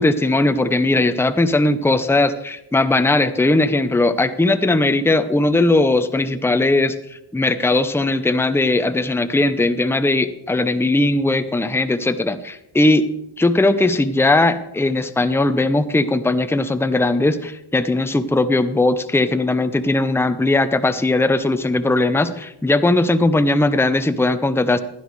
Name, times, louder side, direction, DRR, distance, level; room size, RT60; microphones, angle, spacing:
voice 1, 0.0-13.1 13.4-24.8, left 2 dB, 5° left, 11 dB, 0.6 m, -18 dB
15.5 x 11.0 x 3.2 m, 0.81 s
cardioid pair, 80°, 50 cm